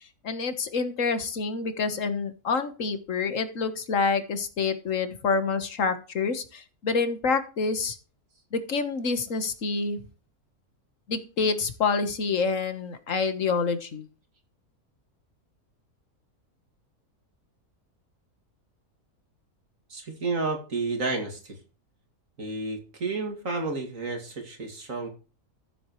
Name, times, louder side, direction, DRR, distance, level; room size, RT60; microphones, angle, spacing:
voice 1, 0.2-8.0 8.5-10.0 11.1-14.0, left 4 dB, 60° left, 10 dB, 1.6 m, -27 dB
voice 2, 19.9-21.6 22.4-25.1, right 3 dB, 60° right, 4 dB, 2.7 m, -31 dB
14.0 x 7.9 x 3.1 m, 0.35 s
omnidirectional pair, 1.6 m